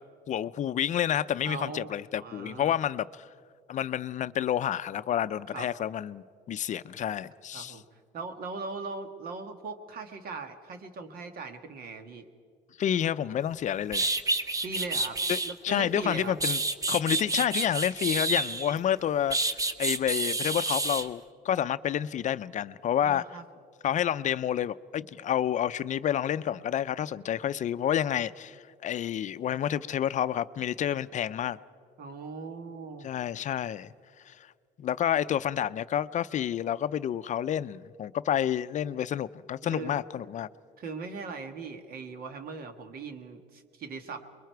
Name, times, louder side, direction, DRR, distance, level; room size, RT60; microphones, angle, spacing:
voice 1, 0.3-3.3 3.7-7.8 12.8-14.1 15.3-15.4 15.6-16.6 16.9-23.4 23.8-31.6 33.0-33.9 34.3-34.4 34.8-40.5, left 10 dB, 45° left, 0.5 m, -29 dB
voice 2, 1.4-1.9 2.2-2.7 5.5-5.7 7.5-7.8 8.1-12.2 14.6-15.2 15.4-16.4 23.0-23.4 32.0-33.1 39.6-40.0 40.8-44.2, right 4 dB, 60° right, 1.7 m, -39 dB
sound 1, 13.5-13.6 13.9-15.5 16.1-18.8 19.3-21.1, right 2 dB, 20° right, 0.8 m, -29 dB
29.0 x 22.5 x 4.6 m
cardioid pair, 110°, 17 cm